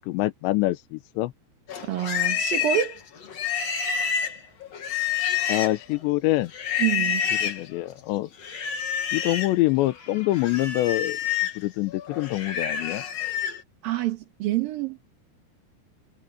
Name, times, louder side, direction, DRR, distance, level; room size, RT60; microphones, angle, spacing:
voice 1, 0.1-1.3 5.5-6.5 7.4-8.3 9.1-11.2 11.6-13.0, left 17 dB, 90° left, 3.1 m, -25 dB
Livestock farm animals working animals, 1.7-5.9 6.5-7.6 8.4-9.6 9.9-13.6, left 8 dB, 45° left, 2.6 m, -28 dB
voice 2, 1.8-3.0 6.8-7.2 13.8-15.1, right 12 dB, 60° right, 3.1 m, -27 dB
omnidirectional pair, 5.1 m